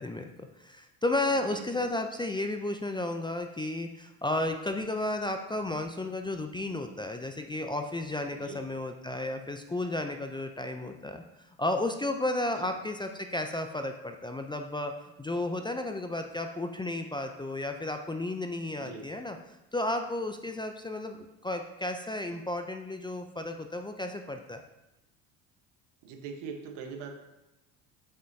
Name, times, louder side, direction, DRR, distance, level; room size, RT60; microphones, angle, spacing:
voice 1, 0.0-11.2 11.6-24.6, left 2 dB, 10° left, 5 dB, 0.4 m, -33 dB
voice 2, 1.5-1.8 8.3-8.6 12.6-12.7 18.8-19.0 26.0-27.1, right 5 dB, 70° right, 4 dB, 1.2 m, -42 dB
7.2 x 5.4 x 2.7 m, 0.95 s
hypercardioid pair, 70°, 43 cm